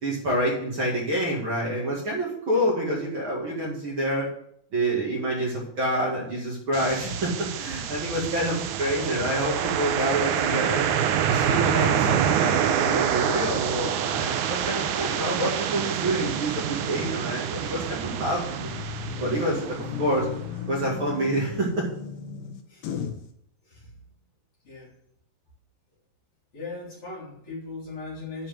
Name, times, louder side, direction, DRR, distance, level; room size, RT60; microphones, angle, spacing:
voice 1, 0.0-4.3 4.7-10.9 11.3-18.8 19.2-20.3 20.7-21.9, right 1 dB, 40° right, -4 dB, 2.6 m, -27 dB
sound 1, 6.7-20.6, right 8 dB, 75° right, 2.0 m, -27 dB
sound 2, 17.5-23.3, left 7 dB, 90° left, 2.7 m, -36 dB
voice 2, 22.7-23.0 23.6-24.0 24.6-24.9 26.5-28.5, left 3 dB, 40° left, -5 dB, 3.5 m, -39 dB
10.5 x 4.6 x 7.7 m, 0.70 s
omnidirectional pair, 3.8 m